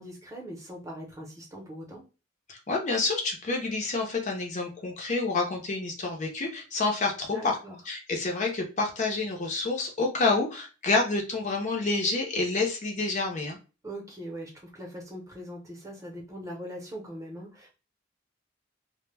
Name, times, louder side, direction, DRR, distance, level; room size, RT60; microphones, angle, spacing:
voice 1, 0.0-2.0 7.3-7.8 13.8-17.7, equal, 15° right, -1 dB, 0.7 m, -41 dB
voice 2, 2.5-7.6 7.8-13.6, left 3 dB, 40° left, 1 dB, 0.5 m, -28 dB
2.1 x 2.1 x 3.2 m, 0.31 s
head